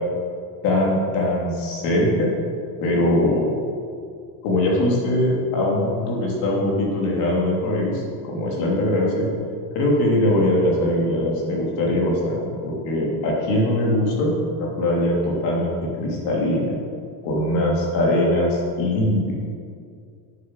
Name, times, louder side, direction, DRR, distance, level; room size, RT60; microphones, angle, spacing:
voice 1, 0.6-2.3 2.8-3.5 4.4-8.0 8.3-9.3 9.7-16.8 17.2-19.3, left 1 dB, 50° left, -2 dB, 3.0 m, -21 dB
9.1 x 7.7 x 6.4 m, 2.3 s
cardioid pair, 170°, 49 cm